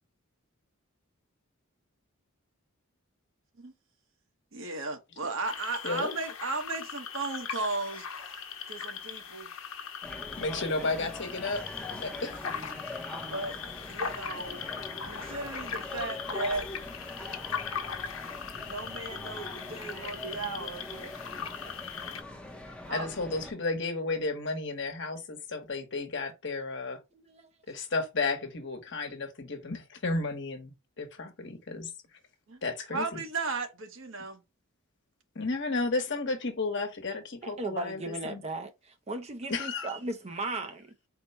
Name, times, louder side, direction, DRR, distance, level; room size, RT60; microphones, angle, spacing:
voice 1, 4.5-8.1 8.7-9.5 10.5-10.8 13.3-14.6 15.1-16.7 18.6-21.1 22.9-23.1 32.5-32.6 32.9-34.4, right 3 dB, 65° right, 1.1 m, -36 dB
sound 1, 5.4-22.2, left 7 dB, 80° left, 0.9 m, -39 dB
sound 2, 10.0-23.5, left 2 dB, 5° left, 0.7 m, -43 dB
voice 2, 10.4-11.6 11.9-12.4 22.9-27.0 27.7-31.9 32.6-33.2 35.3-38.4 39.5-39.9, left 3 dB, 55° left, 1.1 m, -33 dB
voice 3, 27.1-27.5 37.4-40.9, right 2 dB, 30° right, 0.6 m, -37 dB
4.4 x 2.2 x 4.1 m
head